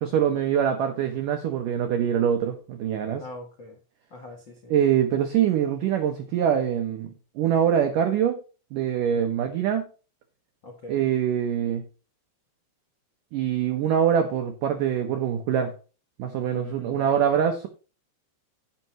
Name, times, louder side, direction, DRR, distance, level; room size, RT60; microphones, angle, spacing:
voice 1, 0.0-3.2 4.7-8.4 8.7-9.9 10.9-11.8 13.3-15.7 16.2-17.7, right 9 dB, 80° right, 1.8 m, -24 dB
voice 2, 3.2-3.8 4.1-4.7 9.1-9.2 10.6-11.1 16.5-17.3, left 1 dB, 75° left, 1.0 m, -42 dB
16.5 x 5.7 x 3.0 m
omnidirectional pair, 5.2 m